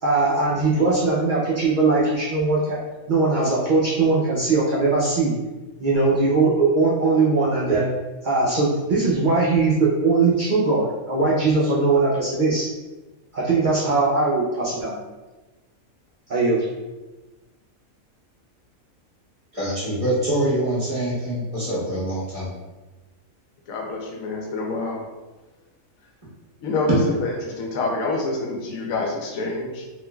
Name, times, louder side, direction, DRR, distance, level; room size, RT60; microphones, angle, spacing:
voice 1, 0.0-2.8 3.1-5.4 5.8-7.9 8.2-12.7 13.3-15.0 16.3-16.6, right 3 dB, 70° right, -6 dB, 0.4 m, -20 dB
voice 2, 19.5-22.5, right 1 dB, 25° right, -9 dB, 1.2 m, -25 dB
voice 3, 23.7-25.0 26.6-29.8, left 2 dB, 80° left, 0 dB, 1.0 m, -27 dB
3.7 x 2.6 x 2.2 m, 1.2 s
omnidirectional pair, 1.5 m